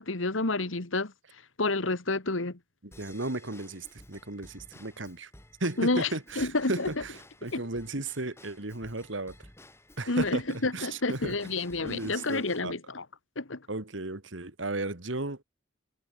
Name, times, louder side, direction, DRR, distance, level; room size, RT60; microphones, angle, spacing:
voice 1, 0.0-2.6 5.8-6.9 7.5-7.6 10.1-13.1 13.4-13.7, left 2 dB, 85° left, 2.0 m, -30 dB
Drum kit / Drum / Bell, 2.9-12.6, left 1 dB, 15° left, 6.8 m, -54 dB
voice 2, 3.0-5.3 5.6-7.1 7.4-9.3 10.0-10.4 10.7-11.4 11.8-12.7 13.7-15.4, right 2 dB, 70° right, 2.4 m, -34 dB
head